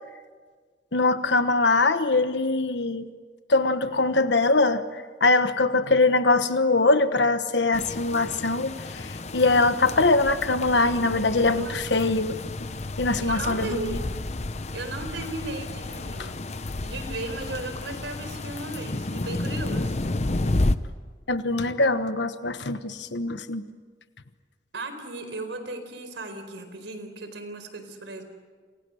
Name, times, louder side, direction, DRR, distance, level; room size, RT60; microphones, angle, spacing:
voice 1, 0.9-3.1 3.5-4.8 5.2-12.7 13.0-14.0 16.2-16.3 21.3-23.6, left 3 dB, 75° left, 10 dB, 1.3 m, -22 dB
sound 1, 7.7-20.8, left 2 dB, 35° left, 0.8 m, -31 dB
voice 2, 11.5-12.2 13.2-14.0 14.7-16.4 16.8-19.9 24.7-28.2, right 2 dB, 90° right, 8 dB, 4.3 m, -36 dB
29.0 x 28.0 x 6.5 m, 1.5 s
head